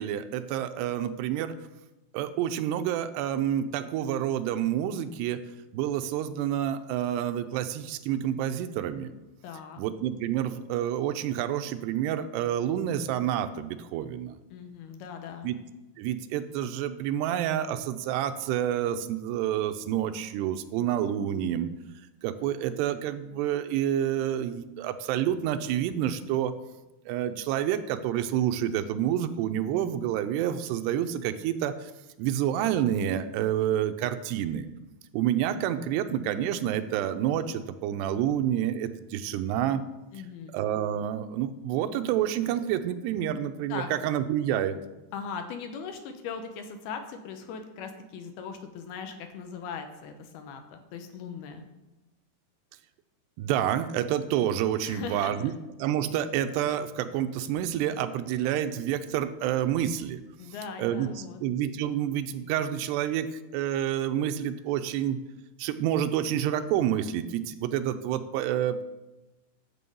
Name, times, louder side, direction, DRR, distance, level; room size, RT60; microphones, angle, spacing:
voice 1, 0.0-1.5 2.1-5.4 5.7-9.1 9.8-14.3 15.4-15.6 16.0-21.7 22.2-26.5 27.1-31.9 32.2-34.7 35.1-39.8 40.5-44.8 53.4-55.5 55.8-60.2 60.8-61.1 61.4-65.2 65.6-68.8, right 10 dB, 85° right, 9 dB, 2.8 m, -28 dB
voice 2, 9.4-9.8 14.5-15.5 40.1-40.5 43.7-43.9 45.1-51.7 54.8-55.5 60.4-61.4, left 6 dB, 75° left, 6 dB, 2.7 m, -39 dB
11.5 x 7.6 x 5.4 m, 1.0 s
omnidirectional pair, 4.8 m